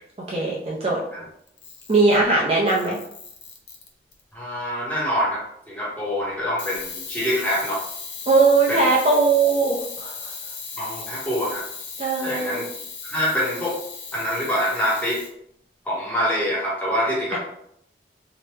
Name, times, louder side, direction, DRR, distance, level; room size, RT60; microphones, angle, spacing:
voice 1, 0.3-1.0 1.9-3.0 8.3-10.1 12.0-12.7 17.3-17.4, right 3 dB, 35° right, -3 dB, 0.5 m, -19 dB
Camera, 1.5-2.2 2.7-4.2 6.6-15.3, left 5 dB, 85° left, 0.6 m, -37 dB
voice 2, 4.3-7.8 8.7-8.9 10.8-11.7 12.2-12.6 13.0-13.8 14.1-15.2 15.9-17.4, equal, 10° left, -6 dB, 0.8 m, -25 dB
2.8 x 2.1 x 3.3 m, 0.71 s
head